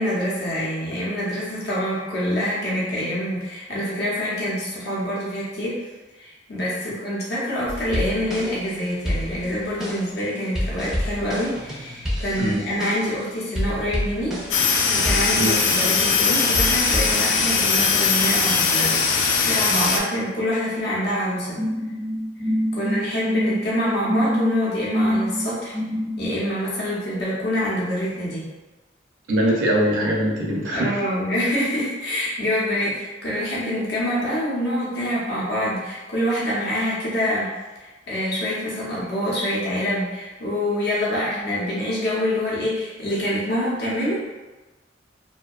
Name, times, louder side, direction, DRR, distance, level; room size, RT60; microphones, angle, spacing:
voice 1, 0.0-5.8 6.2-14.4 14.9-19.0 19.2-21.6 22.7-25.7 26.2-28.5 30.7-37.5 37.8-44.3, equal, 60° left, -6 dB, 0.7 m, -26 dB
sound 1, 7.7-8.7 9.0-13.2 13.5-14.7 15.0-16.2 16.5-17.1, equal, ahead, 0.4 m, -29 dB
sound 2, 14.5-20.0, left 4 dB, 85° left, 0.3 m, -20 dB
sound 3, 21.5-26.3, equal, 30° left, 0.9 m, -25 dB
voice 2, 29.3-31.0, equal, 75° right, -2 dB, 0.5 m, -22 dB
2.6 x 2.2 x 2.3 m, 1.2 s
head